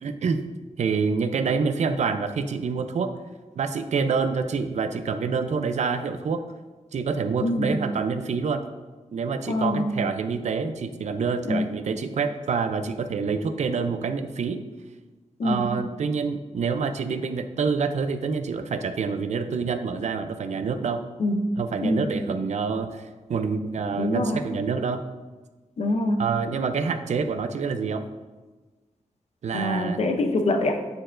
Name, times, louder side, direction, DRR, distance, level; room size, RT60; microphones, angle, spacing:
voice 1, 0.0-0.4 0.8-3.1 3.6-6.4 6.9-8.6 9.1-14.6 15.4-21.0 21.6-25.0 26.2-28.0 29.4-30.0, right 5 dB, 65° right, 8 dB, 0.4 m, -27 dB
voice 2, 7.4-7.8 9.5-10.0 11.4-11.7 15.4-15.7 21.2-21.5 21.8-22.1 24.0-24.4 25.8-26.2 29.5-30.8, left 1 dB, 55° left, 6 dB, 0.6 m, -25 dB
9.4 x 4.4 x 2.5 m, 1.2 s
wide cardioid pair, 170°, 13 cm